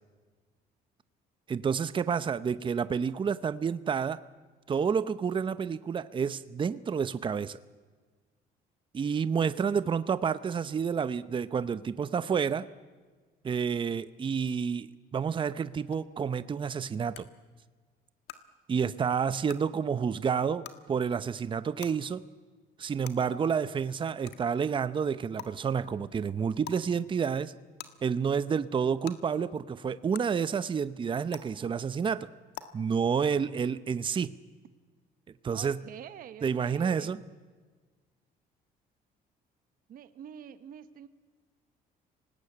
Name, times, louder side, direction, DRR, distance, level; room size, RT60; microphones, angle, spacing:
voice 1, 1.5-4.2 4.7-7.6 8.9-12.7 13.4-17.3 18.7-22.2 22.8-27.5 28.0-32.3 32.7-34.3 35.4-35.8 36.4-37.2, right 6 dB, 30° right, 14 dB, 0.7 m, -29 dB
sound 1, 15.9-16.0 17.1-17.2 18.3-18.4 19.5-19.6 20.6-20.8 21.8-21.9 23.0-23.1 24.3-24.4 25.4-25.5 26.6-26.8 27.8-27.9 29.0-29.1 30.1-30.2 31.3-31.4 32.5-32.6, left 13 dB, 75° left, 1.6 m, -42 dB
voice 2, 35.5-37.2 39.9-41.1, right 9 dB, 55° right, 11 dB, 1.1 m, -46 dB
26.5 x 19.0 x 8.6 m, 1.4 s
cardioid pair, 110°, 17 cm